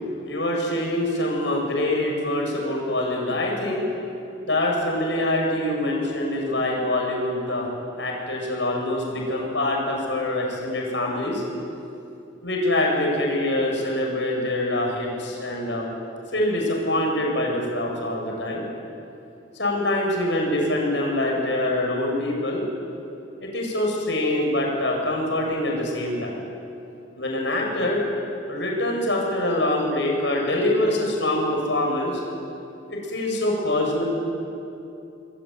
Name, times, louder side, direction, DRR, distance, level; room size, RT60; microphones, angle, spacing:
voice 1, 0.3-3.8 4.4-7.7 8.0-11.4 12.4-15.9 16.3-18.7 19.5-22.7 23.4-26.4 27.2-28.0 28.5-32.2 32.9-34.0, left 1 dB, 70° left, 0 dB, 7.8 m, -24 dB
29.0 x 21.5 x 9.4 m, 2.8 s
head